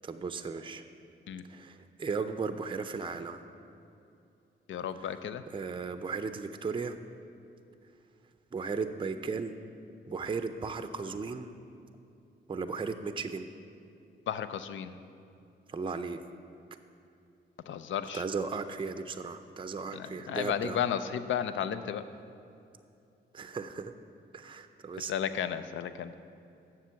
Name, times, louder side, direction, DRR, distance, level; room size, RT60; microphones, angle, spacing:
voice 1, 0.0-0.9 1.5-3.4 5.5-7.0 8.5-9.6 10.1-11.5 12.5-13.5 15.7-16.2 18.1-20.8 23.3-23.9 24.3-25.1, right 4 dB, 25° right, 9 dB, 0.5 m, -36 dB
voice 2, 4.7-5.4 14.3-14.9 17.7-18.2 19.9-22.0 25.0-26.1, left 9 dB, 75° left, 12 dB, 0.5 m, -33 dB
7.5 x 6.1 x 6.9 m, 2.6 s
cardioid pair, 70°, 20 cm